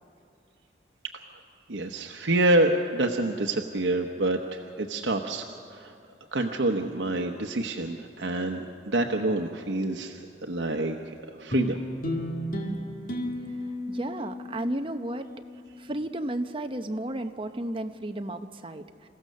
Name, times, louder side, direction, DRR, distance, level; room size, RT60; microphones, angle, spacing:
voice 1, 1.7-5.4 5.7-5.9 6.3-11.8, right 2 dB, 90° right, 3 dB, 1.0 m, -27 dB
sound 1, 11.5-16.1, equal, 50° left, 2.1 m, -34 dB
voice 2, 13.9-15.3 15.8-19.1, right 1 dB, 30° right, 7 dB, 0.8 m, -33 dB
28.0 x 15.5 x 6.7 m, 2.4 s
head